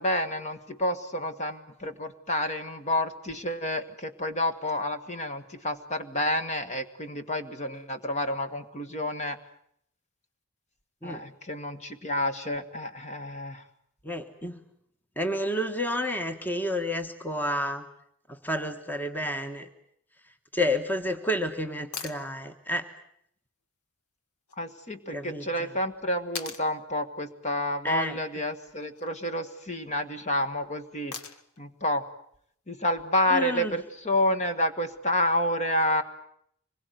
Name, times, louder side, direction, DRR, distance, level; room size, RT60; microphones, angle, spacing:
voice 1, 0.0-9.4 11.0-13.6 24.6-31.2 31.6-32.0 32.7-36.0, left 1 dB, 30° left, 9 dB, 1.6 m, -29 dB
voice 2, 14.0-14.6 15.2-17.9 18.3-19.7 20.5-22.8 25.1-25.7 27.8-28.2 33.3-33.7, left 1 dB, 10° left, 6 dB, 1.4 m, -30 dB
sound 1, 21.9-22.2 24.5-24.6 26.4-26.7 28.7-29.1 31.1-31.6 33.7-33.8, left 6 dB, 85° left, 1.8 m, -39 dB
25.5 x 21.5 x 9.3 m, 0.70 s
head